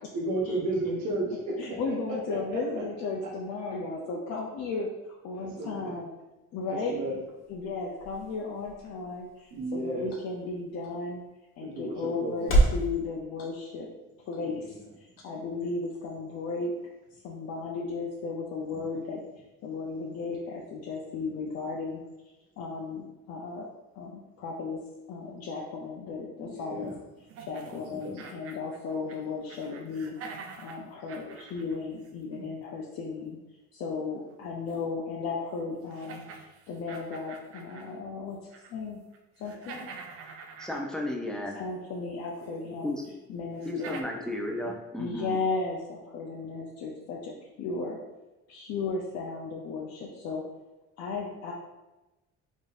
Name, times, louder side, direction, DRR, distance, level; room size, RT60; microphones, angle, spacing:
voice 1, 0.1-1.5 2.7-2.8 5.4-5.9 6.9-7.1 9.5-10.1 11.6-11.9 12.2-12.7 26.4-26.9 27.7-28.1 42.5-42.7 44.6-44.7, right 2 dB, 75° right, -3 dB, 1.0 m, -33 dB
voice 2, 1.6-4.9 5.2-6.1 6.5-7.0 7.5-11.2 11.6-13.9 14.3-16.7 17.1-19.2 19.6-22.0 22.6-23.7 23.9-24.8 25.1-26.9 27.5-30.1 30.6-33.4 33.7-36.2 36.7-38.4 38.7-39.0 39.4-40.0 41.5-42.9 43.3-44.0 45.0-48.0 48.5-50.4 51.0-51.5, left 4 dB, 60° left, -2 dB, 0.6 m, -35 dB
sound 1, 6.6-12.9, right 2 dB, 45° left, 1.1 m, -32 dB
sound 2, 27.3-29.2 29.5-32.6 34.7-34.8 35.4-35.5 35.9-38.0 38.4-38.8 39.1-41.3 42.4-42.5 43.0-43.1 43.6-44.0, right 5 dB, 50° right, 0.5 m, -46 dB
voice 3, 40.6-41.6 42.8-43.0 43.6-45.4, left 1 dB, ahead, 0 dB, 0.5 m, -33 dB
4.0 x 3.5 x 2.5 m, 1.0 s
cardioid pair, 135°, 29 cm